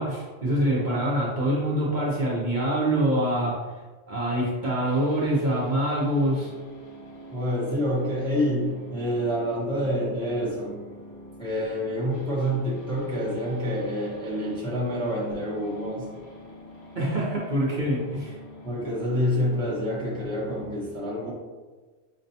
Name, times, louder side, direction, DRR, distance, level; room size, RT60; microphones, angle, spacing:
voice 1, 0.0-3.6 4.1-6.5 16.9-18.4, right 1 dB, 45° right, -6 dB, 0.7 m, -25 dB
sound 1, 4.6-20.6, equal, 45° left, 0.9 m, -46 dB
voice 2, 7.3-10.7 11.4-16.1 18.6-21.3, equal, 5° left, -6 dB, 0.7 m, -27 dB
5.9 x 2.2 x 2.7 m, 1.3 s
omnidirectional pair, 1.2 m